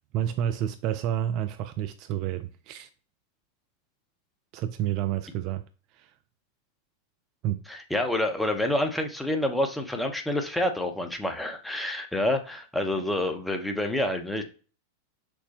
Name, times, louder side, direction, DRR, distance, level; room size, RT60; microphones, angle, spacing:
voice 1, 0.1-2.9 4.5-5.6 5.9-6.1 7.4-7.6, right 11 dB, 40° right, 0.3 m, -29 dB
voice 2, 7.7-14.4, left 1 dB, 5° left, 0.8 m, -28 dB
6.1 x 2.1 x 2.8 m
figure-of-eight pair, 90°, 0 cm